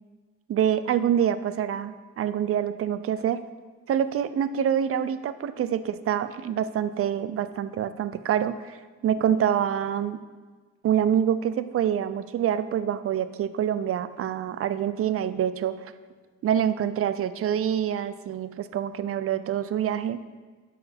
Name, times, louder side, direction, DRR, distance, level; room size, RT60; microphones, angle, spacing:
voice 1, 0.5-3.4 3.9-8.8 9.0-10.2 10.8-15.8 16.4-20.2, right 9 dB, 50° right, 13 dB, 0.5 m, -26 dB
12.0 x 4.7 x 3.4 m, 1.4 s
cardioid pair, 90°, 30 cm